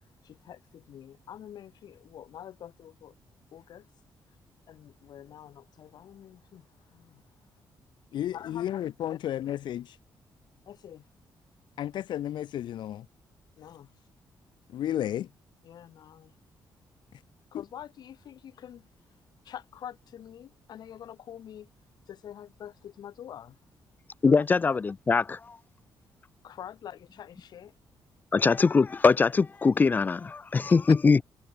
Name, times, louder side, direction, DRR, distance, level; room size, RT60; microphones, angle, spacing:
voice 1, 0.2-3.1 3.5-3.9 4.7-7.2 8.3-8.8 9.1-9.2 10.7-11.0 13.6-13.9 15.6-16.3 17.5-18.9 19.4-21.7 22.1-23.6 24.3-24.4 26.4-27.7, left 10 dB, 60° left, 2.7 m, -46 dB
voice 2, 8.1-10.0 11.8-13.1 14.7-15.3, left 11 dB, 80° left, 2.0 m, -32 dB
voice 3, 24.2-25.6 28.3-31.2, left 4 dB, 25° left, 0.7 m, -22 dB
wide cardioid pair, 180°, 8 cm